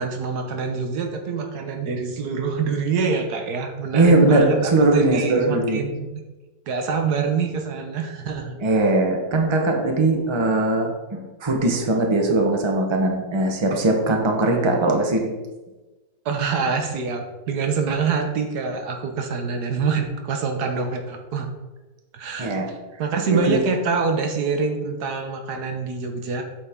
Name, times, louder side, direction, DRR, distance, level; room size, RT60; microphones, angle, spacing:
voice 1, 0.0-6.1 6.7-8.6 16.2-21.5 22.1-26.4, right 5 dB, 75° right, 5 dB, 1.5 m, -25 dB
voice 2, 3.9-5.8 8.6-15.3 22.4-22.7 23.3-23.6, right 2 dB, 20° right, 2 dB, 1.0 m, -20 dB
8.6 x 7.1 x 3.7 m, 1.2 s
omnidirectional pair, 1.7 m